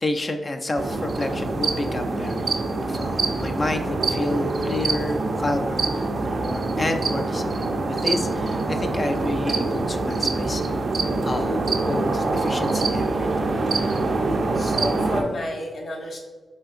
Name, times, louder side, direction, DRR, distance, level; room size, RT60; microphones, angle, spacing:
voice 1, 0.0-10.8 11.2-13.5, left 2 dB, 40° left, 5 dB, 0.4 m, -30 dB
sound 1, 0.8-15.2, right 3 dB, 60° right, 0.5 m, -25 dB
voice 2, 14.5-16.2, left 1 dB, 65° left, -1 dB, 1.0 m, -31 dB
5.0 x 2.7 x 2.5 m, 1.4 s
cardioid pair, 65°, 0 cm